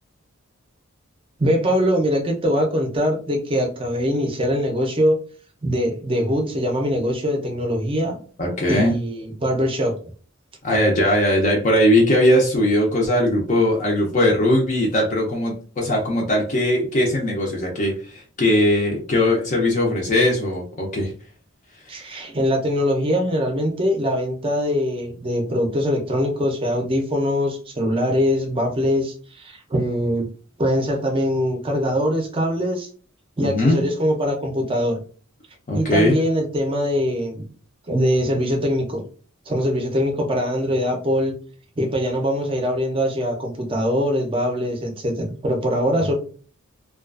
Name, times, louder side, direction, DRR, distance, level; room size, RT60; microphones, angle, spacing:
voice 1, 1.4-5.2 5.6-8.2 8.7-9.9 21.9-30.3 30.6-32.9 33.4-35.0 35.7-37.5 37.9-39.0 39.5-41.3 41.8-46.1, equal, 25° right, 2 dB, 0.5 m, -22 dB
voice 2, 8.4-9.0 10.6-21.1 21.9-22.0 33.4-33.8 35.7-36.2, left 1 dB, 35° left, -1 dB, 0.5 m, -19 dB
2.3 x 2.3 x 2.3 m, 0.40 s
head